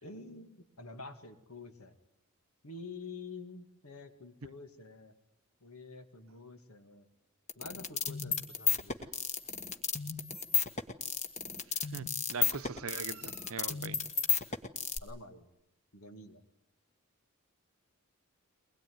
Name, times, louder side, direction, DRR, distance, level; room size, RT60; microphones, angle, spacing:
voice 1, 0.0-1.9 2.6-5.1 5.6-7.1 7.6-9.0 15.0-15.5 15.9-16.4, left 3 dB, 80° left, 2.3 m, -48 dB
sound 1, 7.5-15.0, left 6 dB, 30° left, 1.5 m, -32 dB
voice 2, 11.7-14.0, right 5 dB, 70° right, 0.8 m, -41 dB
22.5 x 20.5 x 9.5 m
head